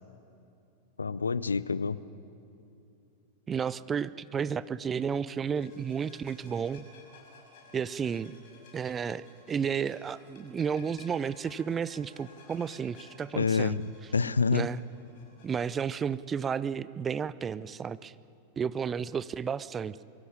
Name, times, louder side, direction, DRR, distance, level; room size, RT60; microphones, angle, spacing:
voice 1, 1.0-2.0 13.4-14.7, left 5 dB, 75° left, 18 dB, 0.5 m, -27 dB
voice 2, 3.5-6.9 7.7-8.3 8.7-13.8 14.5-14.8 15.4-18.1 18.6-20.0, right 7 dB, 20° right, 18 dB, 0.5 m, -32 dB
sound 1, 5.5-15.8, left 3 dB, 50° left, 5.7 m, -56 dB
23.0 x 15.5 x 8.8 m, 2.7 s
figure-of-eight pair, 90°, 0 cm